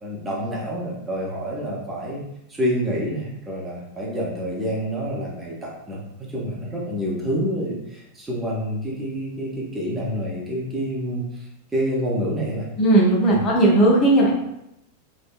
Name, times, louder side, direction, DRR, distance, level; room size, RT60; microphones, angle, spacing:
voice 1, 0.0-2.2 2.5-11.2 11.7-12.7 13.3-13.4, equal, 10° right, -5 dB, 0.7 m, -27 dB
voice 2, 12.8-14.3, right 2 dB, 30° left, -4 dB, 0.7 m, -16 dB
3.3 x 2.1 x 2.4 m, 0.84 s
figure-of-eight pair, 90°, 0 cm